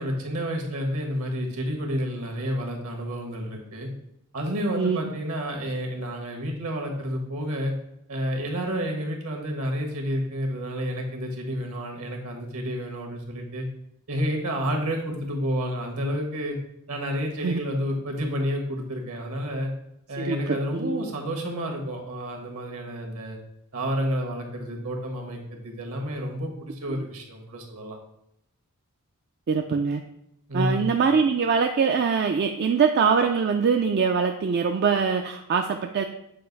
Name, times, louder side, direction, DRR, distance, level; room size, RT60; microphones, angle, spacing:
voice 1, 0.0-3.9 4.3-7.7 8.1-13.7 14.1-16.6 16.9-19.7 20.1-23.4 23.7-28.0 30.5-31.0, equal, 70° right, 2 dB, 1.4 m, -30 dB
voice 2, 20.7-21.1 29.5-30.0 30.5-36.0, right 5 dB, 50° right, 4 dB, 0.4 m, -23 dB
7.6 x 2.5 x 5.2 m, 0.79 s
head